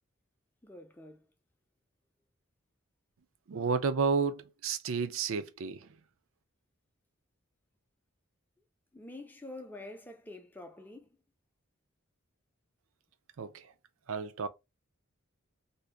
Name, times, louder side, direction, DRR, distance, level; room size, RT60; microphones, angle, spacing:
voice 1, 0.6-1.2 8.9-11.2, left 2 dB, 10° left, 0.5 m, -47 dB
voice 2, 3.5-6.0 13.4-13.7 14.1-14.5, right 5 dB, 75° right, 0.5 m, -31 dB
2.7 x 2.5 x 3.5 m
head